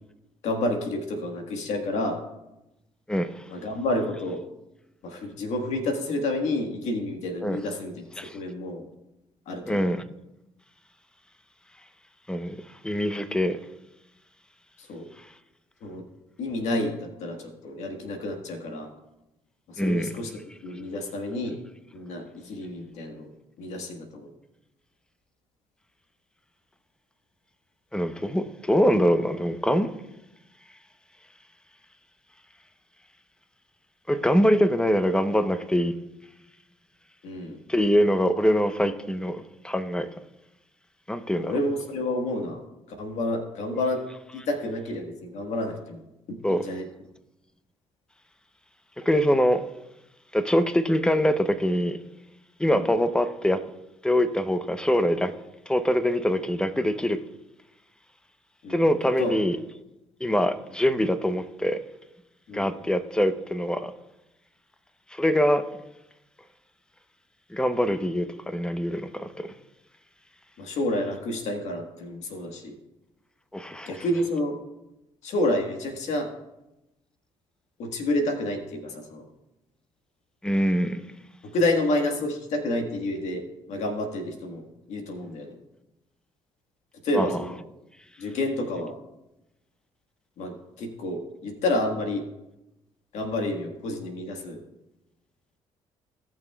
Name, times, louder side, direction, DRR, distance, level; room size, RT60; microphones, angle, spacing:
voice 1, 0.4-2.2 3.5-4.4 5.0-8.0 8.3-8.8 9.5-9.9 14.8-15.1 15.8-16.0 16.4-18.9 19.7-20.3 20.6-21.6 21.9-23.3 23.6-24.3 37.2-37.6 41.4-42.6 43.0-44.0 44.3-46.0 46.3-46.9 52.6-52.9 58.6-58.8 59.2-59.3 62.5-62.8 70.6-72.8 73.8-74.5 75.2-76.3 77.8-79.3 81.5-85.6 87.0-87.6 88.2-88.9 90.4-92.2 93.1-94.6, left 1 dB, 75° left, 1.5 m, -29 dB
voice 2, 3.1-3.4 7.4-7.7 8.2-8.4 9.6-10.0 12.3-12.6 12.8-13.6 19.8-20.2 27.9-29.9 34.1-35.9 37.7-40.1 41.1-41.6 43.7-43.8 46.4-46.6 49.0-49.6 50.3-52.0 52.6-53.6 54.0-55.3 55.7-57.2 58.7-59.6 60.2-61.8 62.5-63.9 65.1-65.7 67.5-69.5 73.5-74.3 80.4-81.0 87.1-87.6, equal, 5° left, 0.8 m, -24 dB
18.0 x 6.0 x 2.3 m
supercardioid pair, 70°, 12 cm